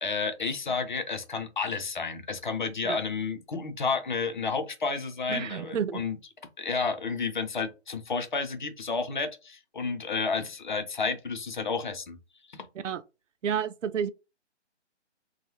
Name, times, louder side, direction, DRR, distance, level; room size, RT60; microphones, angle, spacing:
voice 1, 0.0-6.2 6.6-12.2 12.5-12.7, left 4 dB, 45° left, 0.4 m, -31 dB
voice 2, 5.3-6.0 12.8-13.0 13.4-14.1, right 7 dB, 90° right, 0.5 m, -30 dB
2.3 x 2.0 x 2.8 m
hypercardioid pair, 155°, 36 cm